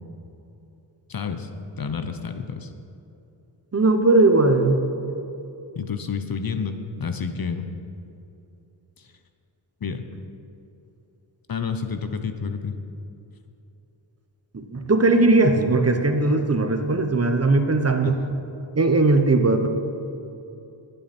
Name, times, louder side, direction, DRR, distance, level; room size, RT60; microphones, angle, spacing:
voice 1, 1.1-1.5 1.8-2.7 5.7-7.7 9.8-10.0 11.5-12.8 18.0-18.1, left 6 dB, 50° left, 8 dB, 0.9 m, -29 dB
voice 2, 3.7-4.8 14.5-18.2 18.7-19.7, right 2 dB, 30° right, 6 dB, 1.1 m, -19 dB
20.5 x 9.2 x 4.4 m, 2.8 s
wide cardioid pair, 95°, 47 cm